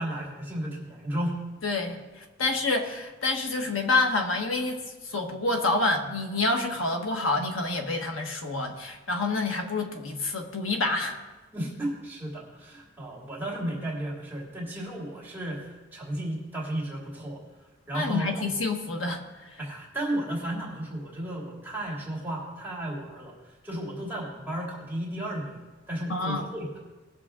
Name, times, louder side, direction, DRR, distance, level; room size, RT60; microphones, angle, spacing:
voice 1, 0.0-1.4 2.4-2.5 11.5-17.4 17.9-18.5 19.6-26.8, right 1 dB, 10° right, -5 dB, 2.6 m, -34 dB
voice 2, 1.6-11.2 17.9-19.2 19.5-19.6 26.1-26.5, left 3 dB, 75° left, 3 dB, 1.5 m, -28 dB
19.5 x 7.0 x 3.7 m, 1.2 s
head